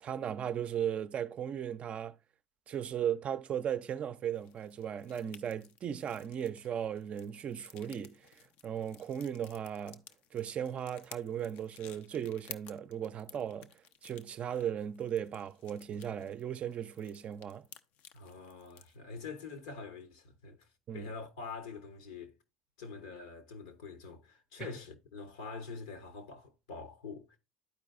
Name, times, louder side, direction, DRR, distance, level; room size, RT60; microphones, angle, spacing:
voice 1, 0.0-2.2 2.7-10.0 10.3-13.7 14.0-17.7 20.9-21.1 24.6-24.7, right 9 dB, 40° right, 0.4 m, -37 dB
sound 1, 4.3-19.0, left 9 dB, 65° left, 0.5 m, -55 dB
voice 2, 18.1-20.6 20.9-22.3 22.8-27.4, left 4 dB, 80° left, 1.2 m, -45 dB
12.0 x 4.6 x 2.4 m
hypercardioid pair, 80°, 3 cm